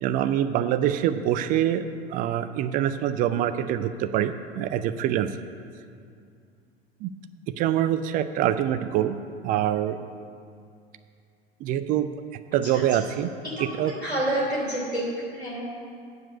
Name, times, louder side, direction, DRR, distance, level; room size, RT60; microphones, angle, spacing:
voice 1, 0.0-1.8 2.1-5.3 7.0-7.1 7.6-9.2 9.4-10.0 11.6-12.1 12.5-13.3 13.6-13.9, right 11 dB, 30° right, 11 dB, 0.4 m, -25 dB
voice 2, 13.4-15.0 15.3-15.6, right 1 dB, 90° left, -5 dB, 3.1 m, -29 dB
7.9 x 7.4 x 8.3 m, 2.3 s
figure-of-eight pair, 80°, 31 cm